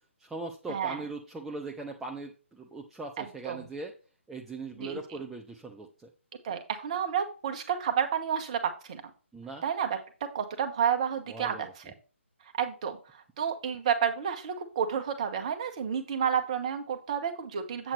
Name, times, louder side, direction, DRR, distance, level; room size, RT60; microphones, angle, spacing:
voice 1, 0.2-3.9 4.3-6.1 9.3-9.6 11.3-11.7, right 3 dB, 5° right, 0 dB, 0.5 m, -40 dB
voice 2, 3.2-3.6 4.8-5.0 6.4-9.0 9.6-11.9 12.6-13.0 13.4-17.9, right 8 dB, 30° right, 6 dB, 1.3 m, -30 dB
8.2 x 7.0 x 3.2 m, 0.35 s
figure-of-eight pair, 140°, 7 cm